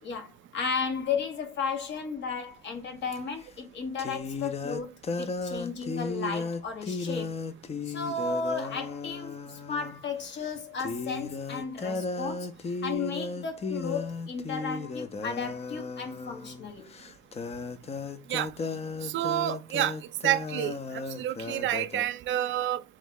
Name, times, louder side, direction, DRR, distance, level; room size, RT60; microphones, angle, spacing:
voice 1, 0.0-7.4 7.8-16.9, left 5 dB, 65° left, 1.2 m, -34 dB
sound 1, 3.1-3.2 4.0-10.0 10.3-10.5 10.8-22.0, left 4 dB, 30° left, 0.5 m, -35 dB
voice 2, 19.0-20.0 20.2-20.7 21.2-22.8, right 12 dB, 75° right, 0.5 m, -28 dB
3.5 x 3.1 x 3.7 m
cardioid pair, 90°, 20 cm